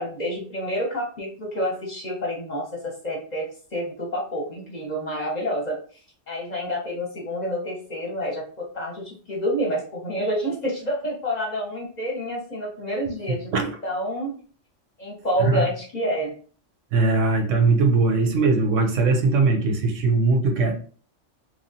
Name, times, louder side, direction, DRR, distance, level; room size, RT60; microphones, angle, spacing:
voice 1, 0.0-5.8 6.3-13.5 13.8-14.4 15.0-16.3, equal, 40° left, -2 dB, 0.7 m, -28 dB
voice 2, 16.9-20.7, right 3 dB, 85° right, 3 dB, 1.0 m, -20 dB
3.1 x 2.3 x 2.6 m, 0.43 s
omnidirectional pair, 1.3 m